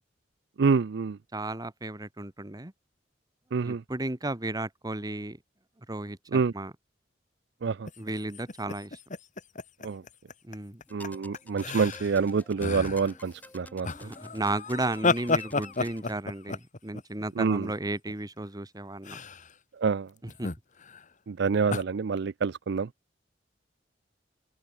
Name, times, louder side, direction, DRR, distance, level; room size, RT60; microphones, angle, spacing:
voice 1, 0.6-1.2 3.5-3.8 6.3-6.5 7.6-7.9 9.8-10.0 10.9-14.1 17.4-17.7 19.8-20.1 21.3-22.9, right 5 dB, 65° right, 0.5 m, -27 dB
voice 2, 1.3-2.7 3.6-5.4 5.9-6.7 8.0-8.9 10.4-10.8 14.0-19.2 20.2-20.5, right 2 dB, 20° right, 1.5 m, -34 dB
sound 1, 7.9-10.5 10.8-11.1 11.3-12.3 12.6-13.2 13.8-18.1 19.0-19.5 20.3-21.0 21.7-21.8, left 3 dB, 45° left, 1.9 m, -32 dB
sound 2, 10.9-16.2, left 1 dB, 10° left, 7.1 m, -51 dB
open air
head